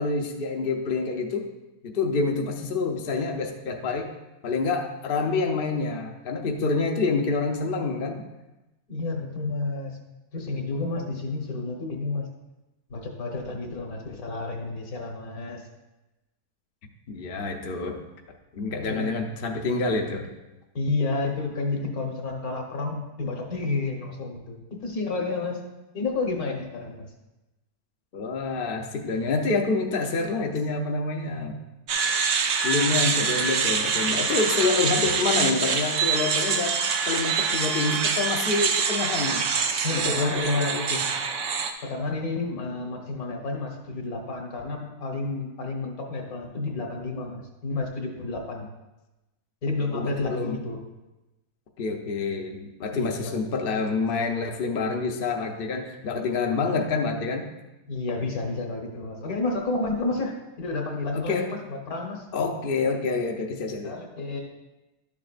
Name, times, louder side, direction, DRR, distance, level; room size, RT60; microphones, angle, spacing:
voice 1, 0.0-1.5 1.8-4.1 4.4-8.2 17.1-18.0 18.5-20.3 28.1-31.6 32.6-39.4 39.9-41.0 49.9-50.6 51.8-57.5 61.1-61.5 62.3-64.0, left 4 dB, 50° left, 3 dB, 0.7 m, -27 dB
voice 2, 8.9-10.0 10.3-12.3 12.9-15.6 18.9-19.1 20.8-25.6 25.9-27.1 39.8-40.8 41.8-48.7 49.6-50.8 52.9-53.4 57.9-62.3 63.8-64.4, left 3 dB, 70° left, 2 dB, 1.7 m, -30 dB
sound 1, 31.9-41.7, right 5 dB, 60° right, 0.9 m, -25 dB
11.5 x 7.1 x 2.5 m, 1.0 s
omnidirectional pair, 1.6 m